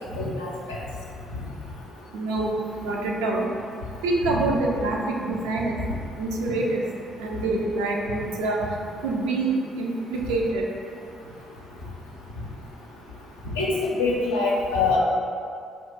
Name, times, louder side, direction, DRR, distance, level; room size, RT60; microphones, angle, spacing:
voice 1, 0.1-0.5 4.2-4.4 13.4-15.0, left 3 dB, 80° left, -5 dB, 0.4 m, -24 dB
voice 2, 2.1-2.6 2.8-3.5 4.0-5.8 6.2-6.8 7.2-8.6 9.0-10.7, right 2 dB, 70° right, -1 dB, 0.3 m, -26 dB
2.4 x 2.2 x 3.7 m, 2.4 s
figure-of-eight pair, 40°, 0 cm